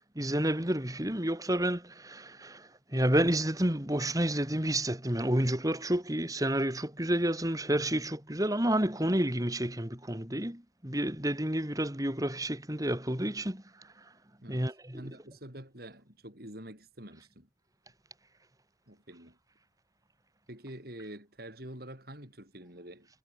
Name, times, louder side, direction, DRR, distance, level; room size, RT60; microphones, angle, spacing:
voice 1, 0.1-13.6 14.5-15.0, right 1 dB, 20° right, 3.2 m, -30 dB
voice 2, 14.9-17.5 18.9-19.4 20.5-23.1, right 1 dB, 55° right, 7.8 m, -46 dB
head